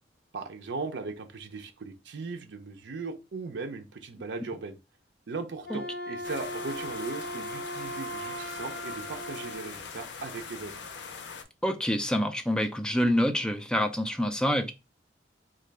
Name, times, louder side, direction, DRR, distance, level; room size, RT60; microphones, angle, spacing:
voice 1, 0.3-4.8 5.3-10.7, right 4 dB, 75° right, 0.5 m, -38 dB
Wind instrument woodwind instrument, 5.6-9.7, equal, 55° left, 0.9 m, -38 dB
sound 1, 6.2-11.4, left 5 dB, 75° left, 0.5 m, -42 dB
voice 2, 11.6-14.7, equal, 5° left, 0.4 m, -26 dB
3.6 x 2.2 x 3.2 m
head